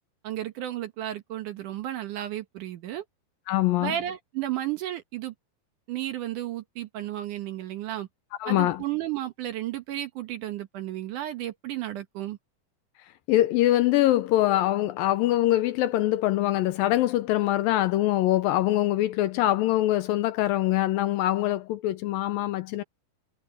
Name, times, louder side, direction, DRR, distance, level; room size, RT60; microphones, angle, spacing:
voice 1, 0.2-3.0 3.8-5.3 5.9-8.1 8.5-12.4, right 13 dB, 65° right, 2.3 m, -33 dB
voice 2, 3.5-4.0 8.4-8.8 13.3-22.8, left 14 dB, 80° left, 2.2 m, -23 dB
omnidirectional pair, 4.5 m